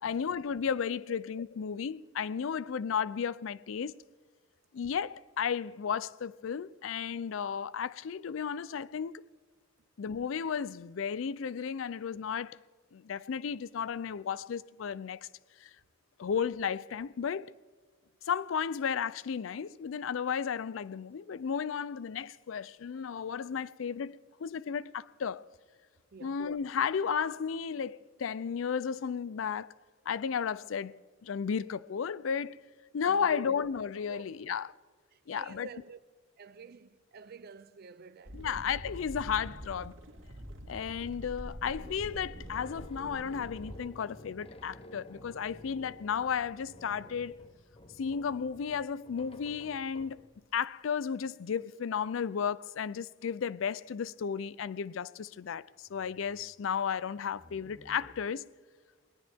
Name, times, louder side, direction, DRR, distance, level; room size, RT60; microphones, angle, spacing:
voice 1, 0.0-4.0 4.7-9.2 10.0-12.6 12.9-15.2 15.6-15.7 16.2-17.5 18.3-25.4 26.2-29.7 30.1-32.6 32.9-34.7 35.3-35.7 38.3-39.9 40.7-47.4 48.0-50.2 50.5-58.5, left 7 dB, 85° left, 0.4 m, -34 dB
voice 2, 26.1-26.5 33.0-33.7 34.1-34.2 35.1-36.0 36.4-38.7, right 4 dB, 50° right, 0.5 m, -49 dB
sound 1, 38.2-43.8, equal, 85° right, 2.1 m, -45 dB
sound 2, 40.8-50.6 55.9-56.6 57.2-58.1, left 1 dB, 30° left, 0.8 m, -53 dB
21.5 x 18.5 x 3.5 m
head